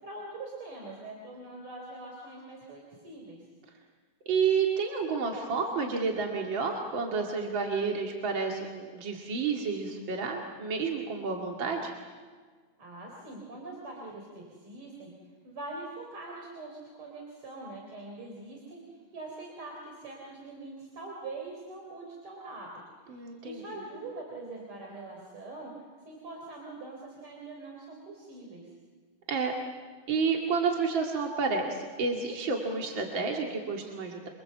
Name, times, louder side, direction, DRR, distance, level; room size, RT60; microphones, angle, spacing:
voice 1, 0.0-3.4 12.8-15.1 15.4-22.7 23.1-25.7 26.1-28.7, right 2 dB, 90° right, -1 dB, 4.8 m, -43 dB
voice 2, 4.3-11.9 23.1-23.6 29.3-29.5 30.1-34.3, right 5 dB, 65° right, 1 dB, 3.1 m, -30 dB
28.0 x 25.5 x 7.8 m, 1.5 s
omnidirectional pair, 2.3 m